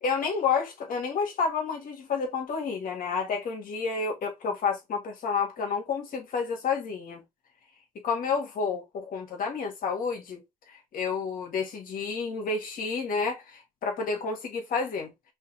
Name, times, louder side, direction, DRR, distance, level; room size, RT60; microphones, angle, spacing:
voice 1, 0.0-7.2 8.0-10.4 10.9-15.3, left 5 dB, 55° left, 1.9 m, -30 dB
5.5 x 2.9 x 3.3 m
cardioid pair, 110°, 17 cm